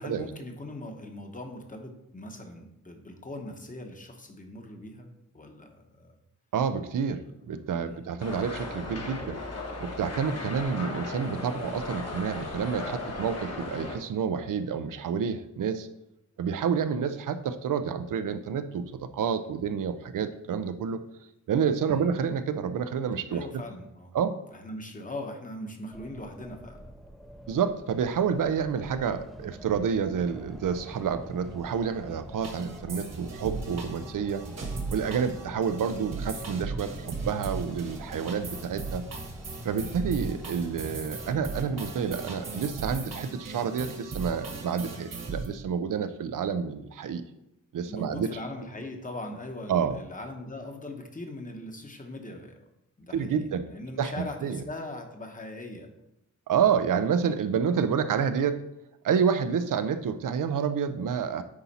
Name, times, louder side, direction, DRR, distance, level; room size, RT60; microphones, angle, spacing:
voice 1, 0.0-6.2 7.2-7.3 7.8-8.1 21.9-22.1 23.3-24.1 24.5-26.8 47.9-52.6 53.0-55.9, left 1 dB, 25° left, 3 dB, 1.0 m, -40 dB
voice 2, 6.5-9.4 9.8-15.9 16.4-21.0 21.5-23.5 24.1-24.4 27.5-34.4 34.9-39.1 39.6-47.2 47.7-48.3 49.7-50.0 53.1-53.7 54.0-54.6 56.5-58.6 59.0-61.4, right 7 dB, 80° right, 11 dB, 0.6 m, -29 dB
sound 1, 8.2-14.0, left 3 dB, 50° left, 1.4 m, -37 dB
sound 2, 25.9-43.1, equal, ahead, 0.5 m, -46 dB
sound 3, 32.4-45.5, right 3 dB, 55° right, 1.4 m, -37 dB
9.7 x 4.1 x 4.2 m, 0.86 s
wide cardioid pair, 145°, 31 cm